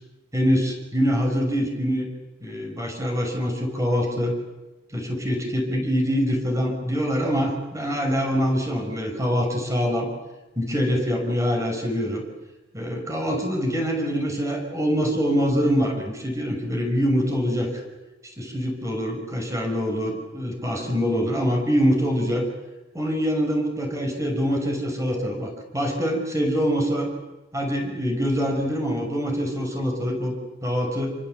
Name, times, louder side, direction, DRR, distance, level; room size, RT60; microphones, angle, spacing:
voice 1, 0.3-2.1 2.4-4.3 4.9-10.1 10.6-12.2 12.7-17.7 18.4-22.4 22.9-27.1 27.5-30.4 30.6-31.2, equal, 15° right, 2 dB, 6.4 m, -24 dB
28.0 x 24.5 x 8.4 m, 1.1 s
head